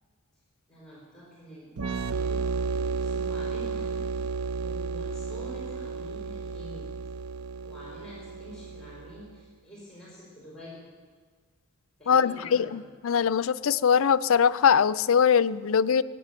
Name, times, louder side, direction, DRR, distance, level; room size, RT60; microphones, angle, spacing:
voice 1, 0.7-4.3 4.6-6.9 7.6-10.9 12.0-12.9, equal, 5° left, -6 dB, 4.6 m, -46 dB
sound 1, 1.8-9.3, right 4 dB, 90° right, 0.7 m, -32 dB
voice 2, 12.1-16.0, left 7 dB, 65° left, 16 dB, 0.4 m, -22 dB
19.0 x 9.7 x 7.6 m, 1.5 s
head